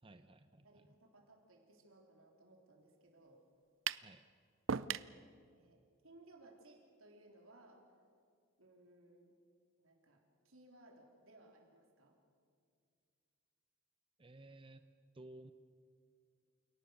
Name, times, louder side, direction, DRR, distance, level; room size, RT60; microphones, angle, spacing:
voice 1, 0.0-0.8 3.9-4.3 14.2-14.8 15.1-15.5, right 2 dB, 25° right, 9 dB, 0.7 m, -56 dB
voice 2, 0.6-3.4 5.5-7.8 8.6-9.3 9.8-12.1, right 2 dB, 85° right, 1 dB, 3.9 m, -63 dB
sound 1, 3.9-4.1 4.7-5.1, right 7 dB, 65° right, 0.5 m, -37 dB
29.0 x 18.5 x 6.5 m, 2.2 s
head